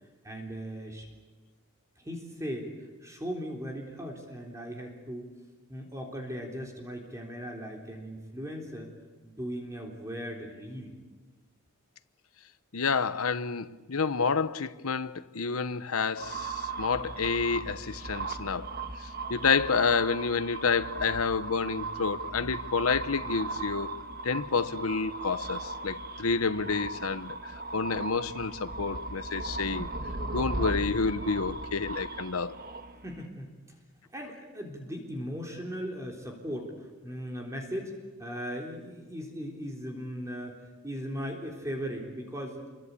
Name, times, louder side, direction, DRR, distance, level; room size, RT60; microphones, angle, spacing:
voice 1, 0.2-1.1 2.0-2.7 3.0-5.3 5.7-8.9 9.2-11.0 33.0-33.8 34.1-37.9 38.2-42.7, equal, 15° right, 3.7 m, -38 dB
voice 2, 12.7-18.7 19.3-23.9 24.2-27.4 27.7-29.9 30.3-32.6, left 5 dB, 85° left, 1.0 m, -29 dB
sound 1, 16.2-33.2, right 3 dB, 45° right, 1.8 m, -37 dB
28.0 x 24.0 x 8.4 m
head